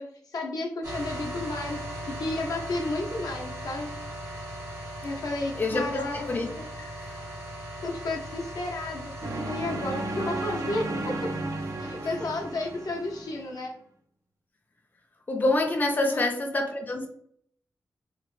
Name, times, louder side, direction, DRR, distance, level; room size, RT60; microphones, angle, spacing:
voice 1, 0.0-4.0 5.0-6.7 7.8-9.1 9.5-10.9 11.8-13.7 16.0-16.3, left 2 dB, 75° left, 0 dB, 0.6 m, -32 dB
sound 1, 0.8-13.4, equal, 90° right, 1.3 m, -39 dB
voice 2, 5.6-6.5 6.8-7.2 15.3-17.1, left 2 dB, 30° left, 3 dB, 0.4 m, -27 dB
sound 2, 9.2-13.4, right 2 dB, 60° right, 0.4 m, -33 dB
2.9 x 2.1 x 3.0 m, 0.62 s
wide cardioid pair, 110°, 6 cm